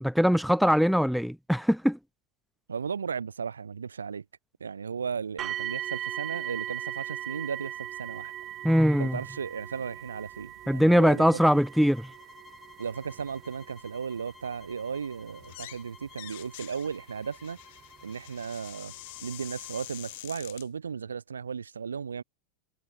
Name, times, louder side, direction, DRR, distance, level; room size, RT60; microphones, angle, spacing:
voice 1, 0.0-2.0 8.6-9.2 10.7-12.1, equal, ahead, 0.3 m, -22 dB
voice 2, 2.7-4.2 4.6-8.3 9.0-11.4 12.8-17.6 18.0-18.9 19.2-22.2, right 6 dB, 70° right, 0.7 m, -35 dB
sound 1, 5.4-18.3 19.1-19.2 19.8-19.9, right 12 dB, 30° right, 1.5 m, -40 dB
sound 2, 11.3-19.9, left 5 dB, 15° left, 7.8 m, -55 dB
sound 3, 15.4-15.8 16.1-20.7, left 19 dB, 50° left, 1.7 m, -46 dB
figure-of-eight pair, 90°, 0 cm